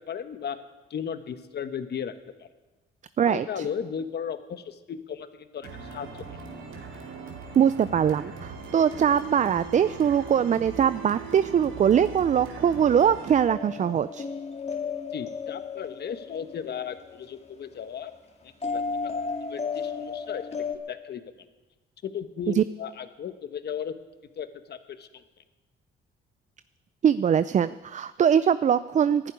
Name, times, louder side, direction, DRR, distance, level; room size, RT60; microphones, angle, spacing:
voice 1, 0.1-0.6 0.9-2.1 2.4-2.5 3.2-6.2 15.1-18.1 18.4-19.1 19.5-20.4 20.9-21.2 22.0-23.9 24.4-25.2, left 8 dB, 55° left, 9 dB, 1.2 m, -35 dB
voice 2, 3.2-3.7 7.6-14.2 22.6-22.7 27.0-29.3, right 8 dB, 40° right, 14 dB, 0.4 m, -22 dB
sound 1, 5.6-13.4, right 5 dB, 80° right, 2.5 m, -40 dB
sound 2, 13.5-17.5 18.6-20.7, left 5 dB, 30° left, 2.0 m, -33 dB
11.5 x 11.0 x 9.7 m, 1.2 s
cardioid pair, 90°, 20 cm